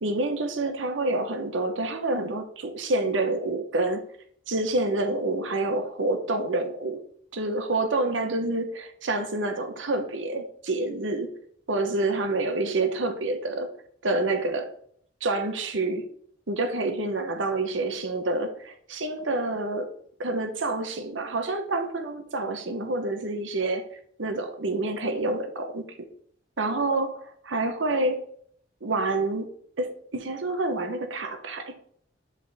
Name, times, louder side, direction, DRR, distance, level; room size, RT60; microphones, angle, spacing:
voice 1, 0.0-4.0 4.5-7.0 7.3-11.3 11.7-13.7 14.0-14.7 15.2-16.1 16.5-19.9 20.2-23.8 24.2-25.8 26.6-28.2 28.8-31.8, right 2 dB, 90° right, 0.9 m, -28 dB
7.3 x 4.2 x 3.5 m
head